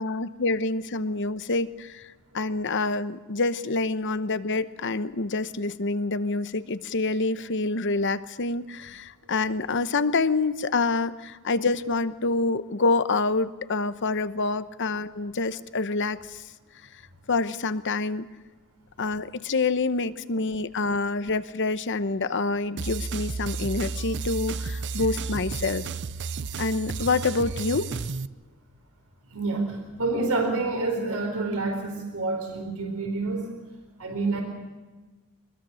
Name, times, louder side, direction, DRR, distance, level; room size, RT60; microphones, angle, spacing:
voice 1, 0.0-16.4 17.3-18.3 19.0-25.9 26.6-27.9, left 3 dB, 55° left, 13 dB, 0.9 m, -27 dB
sound 1, 22.8-28.3, right 4 dB, 50° right, 0.6 m, -32 dB
voice 2, 29.3-33.5 34.0-34.4, right 3 dB, 80° right, 3 dB, 4.4 m, -28 dB
24.0 x 21.0 x 6.4 m, 1.3 s
head